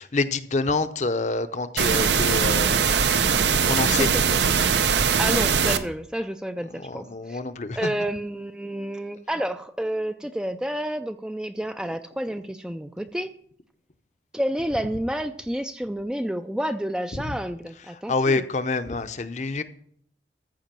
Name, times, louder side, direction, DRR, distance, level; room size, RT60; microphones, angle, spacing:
voice 1, 0.0-3.0 3.2-4.1 6.8-7.9 17.2-17.4 18.1-19.6, left 3 dB, 40° left, 11 dB, 0.7 m, -27 dB
sound 1, 1.8-5.8, right 6 dB, 80° right, 0.7 m, -21 dB
voice 2, 3.8-4.2 5.2-7.4 7.8-13.3 14.3-18.4, right 1 dB, 5° right, 8 dB, 0.3 m, -30 dB
14.0 x 5.0 x 7.4 m, 0.64 s
head